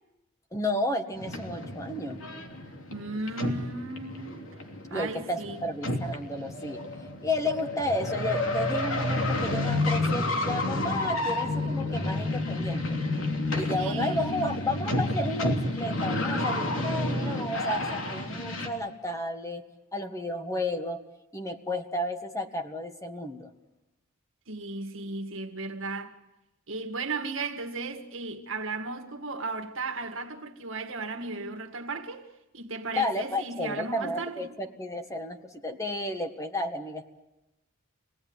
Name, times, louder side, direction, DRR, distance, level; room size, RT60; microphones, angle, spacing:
voice 1, 0.5-2.2 4.9-6.8 7.2-13.0 13.5-19.6 19.9-21.0 21.3-23.5 32.9-37.0, left 1 dB, 15° left, 1.6 m, -32 dB
sound 1, 1.2-18.7, left 2 dB, 65° left, 3.1 m, -30 dB
voice 2, 2.9-4.3 4.9-5.6 13.8-14.6 24.5-26.1 26.7-32.3 32.5-34.6, right 3 dB, 65° right, 1.9 m, -35 dB
27.0 x 19.0 x 9.7 m
head